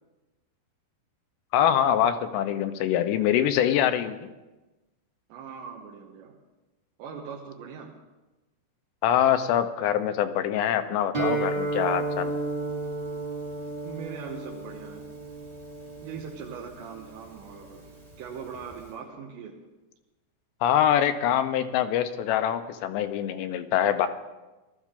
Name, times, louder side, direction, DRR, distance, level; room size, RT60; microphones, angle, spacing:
voice 1, 1.5-4.3 9.0-12.3 20.6-24.1, left 10 dB, 85° left, 10 dB, 3.0 m, -24 dB
voice 2, 5.3-6.4 7.0-8.0 13.8-15.1 16.0-17.9 18.2-19.7, right 6 dB, 85° right, -2 dB, 3.4 m, -41 dB
Guitar, 11.1-18.9, right 3 dB, 15° right, 0.9 m, -33 dB
19.5 x 13.0 x 3.7 m, 1.1 s
omnidirectional pair, 5.0 m